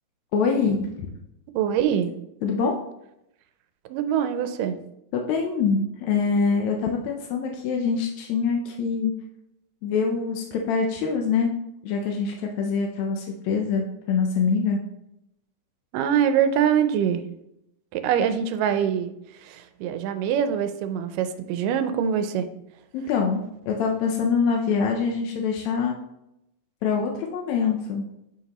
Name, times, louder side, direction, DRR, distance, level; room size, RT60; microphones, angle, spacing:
voice 1, 0.3-0.9 2.4-2.7 5.1-9.1 9.8-11.5 11.8-14.8 22.9-26.0 26.8-28.1, left 5 dB, 75° left, 1 dB, 1.8 m, -24 dB
voice 2, 1.5-2.1 3.9-4.8 15.9-17.2 17.9-19.1 19.5-22.5, right 8 dB, 90° right, 9 dB, 2.3 m, -24 dB
11.0 x 5.3 x 3.0 m, 0.82 s
omnidirectional pair, 3.8 m